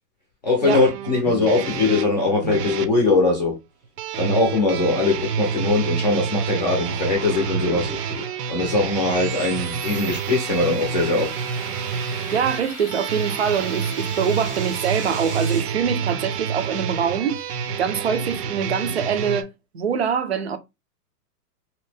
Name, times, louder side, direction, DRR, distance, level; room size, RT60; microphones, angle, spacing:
voice 1, 0.4-3.6 4.2-8.2 8.5-11.3, left 3 dB, 30° left, 0.6 m, -21 dB
sound 1, 0.7-2.9 4.0-19.4, right 7 dB, 80° right, 0.7 m, -28 dB
sound 2, 5.5-15.6, right 1 dB, 5° right, 0.8 m, -39 dB
voice 2, 12.3-19.5 19.7-20.6, right 7 dB, 45° right, 0.4 m, -24 dB
2.9 x 2.7 x 3.3 m
hypercardioid pair, 180°, 46 cm